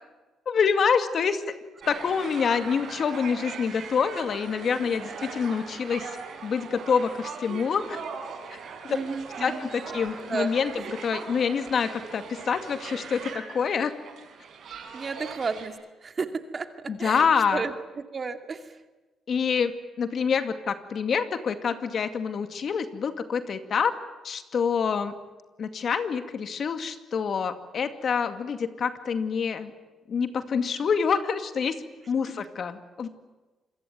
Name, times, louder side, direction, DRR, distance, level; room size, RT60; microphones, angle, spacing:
voice 1, 0.5-1.5 1.9-6.1 6.4-8.0 8.5-8.6 8.8-9.0 9.4-13.9 16.9-17.6 19.3-23.9 24.2-25.1 25.6-29.7 30.1-31.8 32.1-33.1, left 6 dB, 55° left, 9 dB, 2.2 m, -26 dB
sound 1, 1.8-15.7, right 5 dB, 65° right, 6.0 m, -40 dB
voice 2, 8.9-9.7 10.1-10.5 14.9-15.7 16.0-16.3 16.5-16.7 17.0-17.3 17.5-18.8 32.3-32.4, right 4 dB, 35° right, 8 dB, 2.4 m, -32 dB
27.0 x 22.0 x 9.4 m, 1.2 s
cardioid pair, 90°, 0 cm